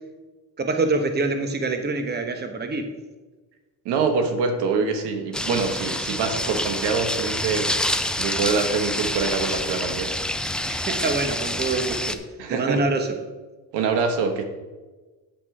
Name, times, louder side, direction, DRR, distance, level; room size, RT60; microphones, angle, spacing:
voice 1, 0.6-2.9 10.7-12.2 12.5-13.2, right 3 dB, 25° right, 6 dB, 1.1 m, -25 dB
voice 2, 3.8-7.7 8.2-10.1 12.4-12.9 13.7-14.4, right 5 dB, 85° right, 6 dB, 1.3 m, -25 dB
sound 1, 5.3-12.2, left 1 dB, ahead, 0.4 m, -27 dB
7.7 x 7.5 x 4.9 m, 1.2 s
cardioid pair, 105°, 40 cm